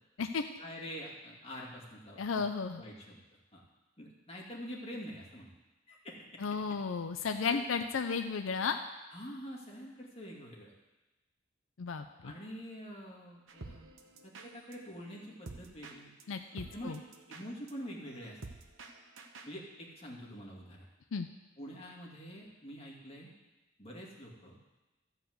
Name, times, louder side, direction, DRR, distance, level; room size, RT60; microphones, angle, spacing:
voice 1, 0.6-2.4 2.8-3.2 3.5-3.6 4.0-5.5 5.9-6.4 7.2-7.6 9.1-10.7 12.2-13.8 14.2-16.1 16.7-17.0 17.3-18.4 19.5-20.9 21.6-23.3 23.8-24.6, equal, 30° left, -3 dB, 2.3 m, -46 dB
voice 2, 2.2-2.8 6.4-8.8 11.8-12.3 16.3-17.0 21.1-21.3, left 5 dB, 85° left, 7 dB, 0.5 m, -34 dB
sound 1, 13.5-19.6, right 3 dB, 80° right, 1.0 m, -51 dB
13.5 x 4.9 x 7.8 m, 1.1 s
head